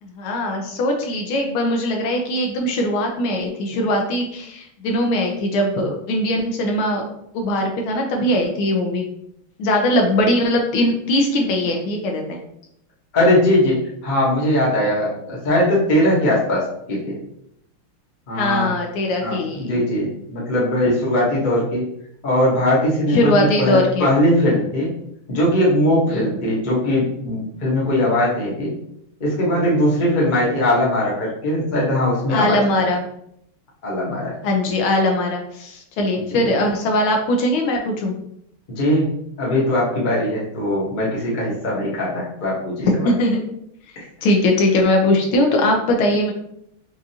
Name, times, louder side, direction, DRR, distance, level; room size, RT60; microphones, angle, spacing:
voice 1, 0.0-7.0 7.3-9.1 9.6-12.4 18.3-19.8 23.1-24.1 26.1-26.2 32.3-33.0 34.4-38.1 42.8-43.4 44.2-46.3, left 1 dB, 80° left, 2 dB, 1.5 m, -20 dB
voice 2, 13.1-17.2 18.3-18.7 19.2-21.9 22.2-23.3 23.6-24.9 25.3-28.7 29.2-32.8 33.8-34.3 36.3-36.5 38.8-39.1 39.4-43.1 43.9-44.0, left 1 dB, 30° left, -5 dB, 0.8 m, -20 dB
4.8 x 2.5 x 2.7 m, 0.74 s
omnidirectional pair, 2.3 m